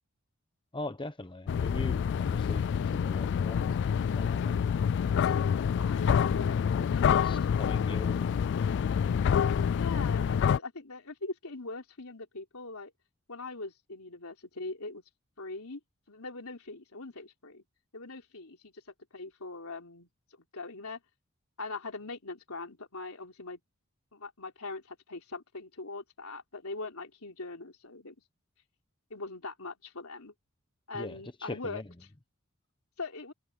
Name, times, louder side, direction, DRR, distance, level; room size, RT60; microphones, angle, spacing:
voice 1, 0.7-2.6 2.9-3.8 4.1-4.8 6.8-8.4 30.9-31.8, left 2 dB, 25° left, 1.1 m, -41 dB
sound 1, 1.5-10.6, left 7 dB, 55° left, 0.3 m, -27 dB
voice 2, 5.8-6.6 7.0-7.6 9.7-12.9 13.3-15.0 15.4-15.8 16.1-17.6 17.9-18.7 19.1-20.1 20.5-21.0 21.6-23.6 24.1-28.2 29.1-30.3 30.9-31.8 33.0-33.3, left 3 dB, 85° left, 3.8 m, -41 dB
head